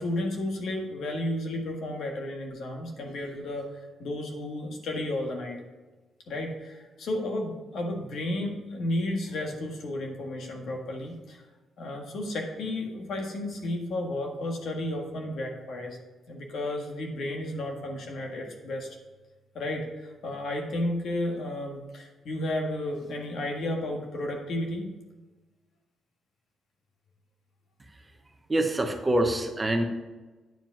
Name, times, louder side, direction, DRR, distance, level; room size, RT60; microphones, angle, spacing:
voice 1, 0.0-3.7 4.0-5.6 6.3-11.4 11.8-16.0 16.3-18.9 19.5-24.9, left 1 dB, 60° left, 2 dB, 1.7 m, -32 dB
voice 2, 28.5-29.8, right 1 dB, 15° right, 5 dB, 0.9 m, -25 dB
9.0 x 5.1 x 5.7 m, 1.2 s
cardioid pair, 155°, 0 cm